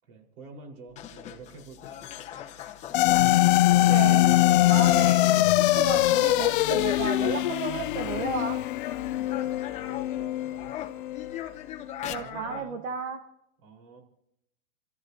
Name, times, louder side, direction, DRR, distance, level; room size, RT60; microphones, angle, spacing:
voice 1, 0.0-2.0 9.1-10.8 12.1-12.8 13.6-14.0, right 3 dB, 45° right, 1 dB, 4.7 m, -48 dB
sound 1, 0.9-10.2 10.5-12.7, left 11 dB, 20° left, 1.0 m, -40 dB
sound 2, 2.9-11.4, left 15 dB, 45° left, 0.5 m, -23 dB
voice 2, 3.8-8.6 12.0-13.2, right 6 dB, 70° right, 5 dB, 1.5 m, -34 dB
29.5 x 14.5 x 2.9 m, 0.79 s
hypercardioid pair, 150°, 38 cm